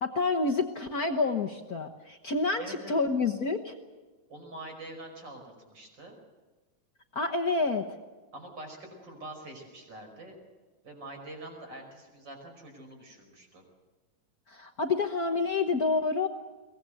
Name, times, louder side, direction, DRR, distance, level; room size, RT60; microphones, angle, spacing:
voice 1, 0.0-3.7 7.1-7.9 14.5-16.3, left 3 dB, 55° left, 4 dB, 1.0 m, -28 dB
voice 2, 2.6-3.0 4.3-6.1 8.3-10.4 10.8-13.6, right 2 dB, 35° right, 3 dB, 5.8 m, -45 dB
23.0 x 19.5 x 7.9 m, 1.3 s
omnidirectional pair, 3.3 m